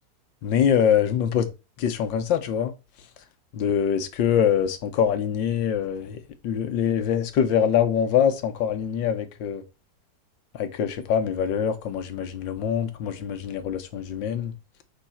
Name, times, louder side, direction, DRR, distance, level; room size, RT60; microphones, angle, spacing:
voice 1, 0.4-1.5 1.8-2.7 3.5-9.6 10.5-14.5, left 8 dB, 80° left, 1.8 m, -24 dB
8.7 x 3.7 x 5.7 m
omnidirectional pair, 2.0 m